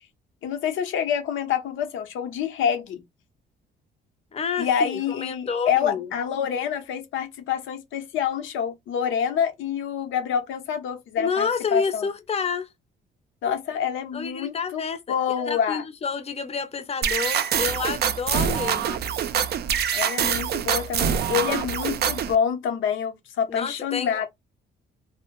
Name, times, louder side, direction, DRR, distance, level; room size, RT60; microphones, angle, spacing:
voice 1, 0.4-3.0 4.6-12.1 13.4-14.8 15.1-15.8 19.9-24.3, left 8 dB, 80° left, 0.7 m, -27 dB
voice 2, 4.3-6.1 11.2-12.7 13.5-13.6 14.1-15.1 15.5-19.0 23.5-24.3, left 5 dB, 30° left, 0.6 m, -29 dB
sound 1, 17.0-22.3, right 8 dB, 55° right, 0.4 m, -25 dB
2.1 x 2.0 x 3.0 m
cardioid pair, 90°, 20 cm